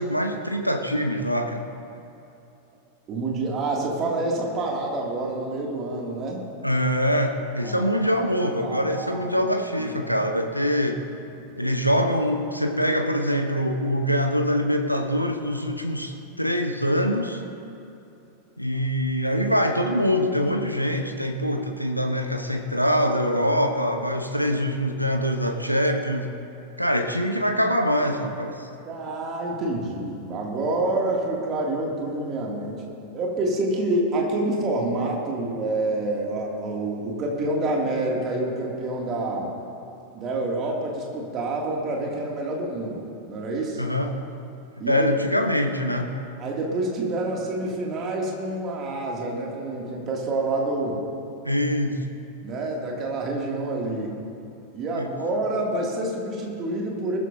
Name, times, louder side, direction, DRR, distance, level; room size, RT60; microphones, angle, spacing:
voice 1, 0.0-1.7 6.6-11.0 11.6-17.4 18.6-26.3 26.8-28.7 43.8-44.2 44.9-46.2 51.4-52.0 55.0-55.1, equal, 90° left, 5 dB, 0.9 m, -24 dB
voice 2, 3.1-6.5 7.6-7.9 8.2-8.3 8.6-9.3 9.9-10.1 11.4-11.5 28.9-32.8 33.1-39.5 40.1-43.8 44.8-45.1 46.4-51.0 52.4-54.1 54.7-57.2, right 2 dB, 30° right, -2 dB, 2.5 m, -27 dB
20.0 x 13.5 x 2.7 m, 2.8 s
figure-of-eight pair, 90°, 0 cm